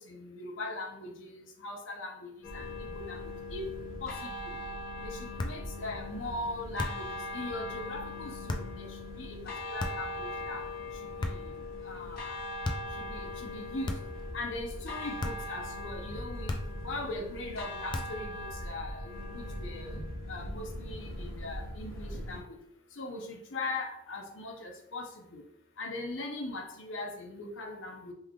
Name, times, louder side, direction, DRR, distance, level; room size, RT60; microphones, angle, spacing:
voice 1, 0.1-1.3 1.6-2.7 2.9-3.2 3.5-3.7 4.0-4.5 5.0-8.9 9.2-9.4 9.7-10.6 11.2-11.4 11.9-12.3 13.0-14.0 14.3-16.6 16.8-19.9 20.3-22.5 23.0-25.4 25.8-28.1, left 2 dB, 75° left, 1 dB, 0.6 m, -40 dB
sound 1, 2.4-22.4, left 1 dB, 55° left, 1.0 m, -40 dB
sound 2, 5.4-5.7 6.8-7.1 8.5-8.8 9.8-10.2 11.2-11.6 12.6-13.0 13.8-14.3 15.2-15.5 16.5-16.9 17.9-18.3, left 2 dB, 25° left, 0.3 m, -36 dB
3.2 x 2.3 x 3.6 m, 0.74 s
head